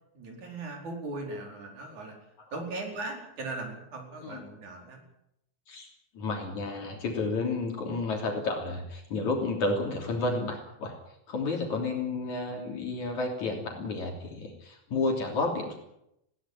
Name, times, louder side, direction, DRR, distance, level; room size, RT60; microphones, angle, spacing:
voice 1, 0.1-2.2 2.5-5.1, right 2 dB, 65° right, 2 dB, 6.2 m, -38 dB
voice 2, 6.1-10.9 11.3-15.8, left 3 dB, 65° left, 1 dB, 4.5 m, -31 dB
20.5 x 17.5 x 9.0 m, 0.80 s
omnidirectional pair, 3.6 m